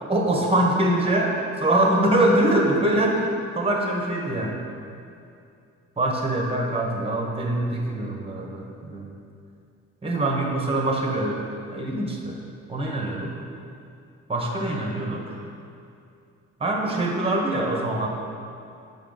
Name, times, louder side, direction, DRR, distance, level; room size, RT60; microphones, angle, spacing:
voice 1, 0.0-3.3 3.5-4.6 6.0-9.1 10.0-11.4 11.7-12.4 12.7-13.3 14.3-15.4 16.6-18.1, right 1 dB, 20° right, -1 dB, 1.2 m, -23 dB
6.9 x 5.0 x 4.0 m, 2.5 s
cardioid pair, 90°, 30 cm